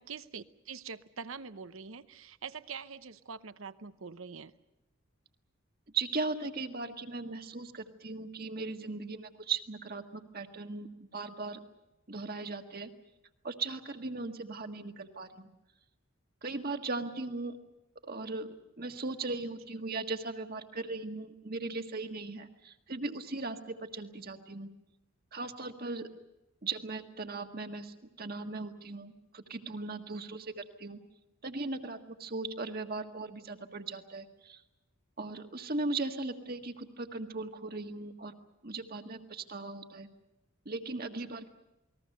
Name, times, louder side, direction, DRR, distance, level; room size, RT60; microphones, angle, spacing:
voice 1, 0.0-4.5 41.2-41.3, right 5 dB, 70° right, 13 dB, 0.9 m, -44 dB
voice 2, 5.9-11.6 12.1-12.9 13.4-15.5 16.4-17.6 18.0-18.5 18.8-24.7 25.3-26.1 26.6-31.0 31.4-34.6 35.2-38.4 38.6-40.1 40.6-41.5, right 3 dB, 45° right, 6 dB, 1.7 m, -38 dB
28.5 x 20.5 x 6.7 m, 0.93 s
head